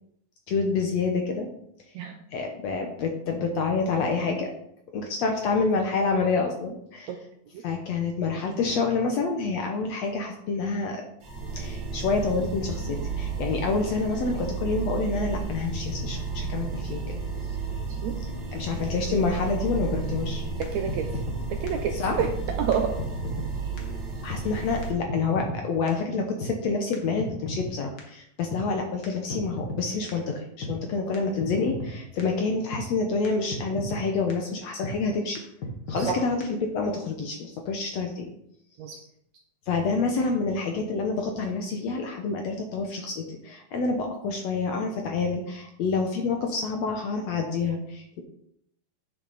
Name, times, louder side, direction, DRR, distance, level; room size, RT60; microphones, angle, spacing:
voice 1, 0.5-1.5 2.3-4.5 4.9-7.1 7.6-11.0 11.5-17.2 18.5-20.4 21.9-22.2 24.2-35.4 35.9-38.3 39.7-48.2, left 4 dB, 70° left, 3 dB, 1.7 m, -28 dB
sound 1, 11.2-24.9, right 4 dB, 45° right, 2.0 m, -32 dB
sound 2, 20.1-20.2 20.6-20.7 20.9-21.4 21.7-21.8 22.2-22.3 22.7-22.8 23.0-23.5 23.8-23.9 24.3-24.4 24.8-24.9 25.1-25.6 25.9-26.0 26.4-26.5 26.9-27.7 28.0-28.1 28.5-28.6 29.0-29.1 29.3-29.8 30.1-30.2 30.6-30.7 31.1-31.2 31.4-31.9 32.2-32.3 32.7-32.8 33.2-33.3 33.5-34.0 34.3-34.4 34.8-34.9 35.3-35.4 35.6-36.1 36.4-36.5, left 1 dB, 45° left, 1.4 m, -34 dB
voice 2, 20.6-21.1 21.6-22.3 22.6-22.9 36.0-36.2 38.8-39.0, right 7 dB, 75° right, 4 dB, 1.7 m, -28 dB
10.0 x 6.6 x 4.1 m, 0.73 s
omnidirectional pair, 3.9 m